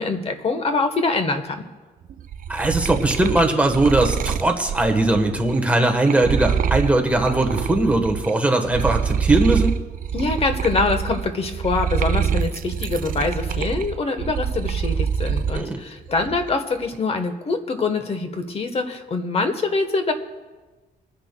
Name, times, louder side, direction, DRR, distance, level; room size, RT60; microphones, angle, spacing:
voice 1, 0.0-1.7 10.1-20.1, left 3 dB, 40° left, 8 dB, 1.1 m, -24 dB
sound 1, 2.1-8.3 8.6-15.7 16.1-16.7, right 7 dB, 60° right, 0.4 m, -26 dB
voice 2, 2.5-9.7 15.5-15.8, right 2 dB, 10° right, 3 dB, 1.2 m, -20 dB
26.5 x 10.0 x 2.2 m, 1.2 s
cardioid pair, 130°, 16 cm